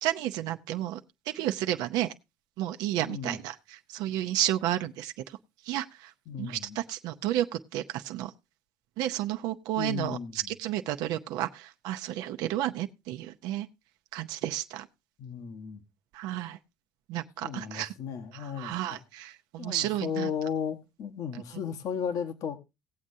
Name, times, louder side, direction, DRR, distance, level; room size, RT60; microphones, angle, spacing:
voice 1, 0.0-1.0 1.3-2.1 2.6-5.1 5.7-6.1 6.4-8.3 9.0-10.2 10.5-13.7 14.1-14.9 16.1-16.6 17.1-17.9 18.3-20.3, right 13 dB, 80° right, 0.7 m, -32 dB
voice 2, 3.1-3.4 6.3-6.8 9.8-10.5 15.2-15.8 17.4-19.0 19.6-22.6, left 7 dB, 60° left, 1.2 m, -35 dB
18.5 x 7.5 x 2.7 m
cardioid pair, 135°, 7 cm